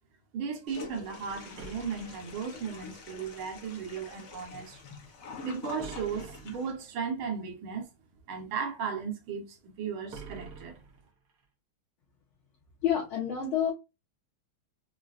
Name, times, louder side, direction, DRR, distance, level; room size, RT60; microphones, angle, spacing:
voice 1, 0.3-4.8 5.4-7.9 8.3-10.8, right 6 dB, 85° right, 1.8 m, -36 dB
Toilet flush, 0.7-6.7, left 4 dB, 55° left, 1.1 m, -46 dB
sound 1, 1.6-2.9 5.8-6.9 10.1-11.4, right 5 dB, 55° right, 1.2 m, -47 dB
voice 2, 12.8-13.7, left 9 dB, 80° left, 2.1 m, -28 dB
4.9 x 2.4 x 2.4 m
omnidirectional pair, 2.2 m